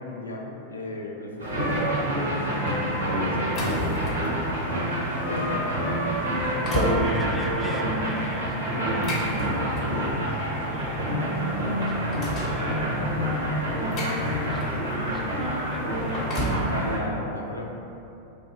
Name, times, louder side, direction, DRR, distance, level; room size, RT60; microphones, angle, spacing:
voice 1, 0.0-1.8 2.0-2.7 3.0-4.3 4.6-4.8 5.3-5.7 16.7-17.6, left 2 dB, 75° left, 0 dB, 0.4 m, -36 dB
sound 1, 1.4-17.0, equal, 75° right, 0.7 m, -27 dB
sound 2, 3.3-4.4 4.9-5.1 5.7-5.8 6.2-7.0 8.7-10.1 11.1-11.2 11.5-12.6 13.4-14.9 15.9-16.7, left 1 dB, 35° left, 0.6 m, -32 dB
voice 2, 6.1-16.5, equal, 5° right, -2 dB, 0.4 m, -41 dB
2.6 x 2.3 x 3.9 m, 2.8 s
figure-of-eight pair, 90°, 0 cm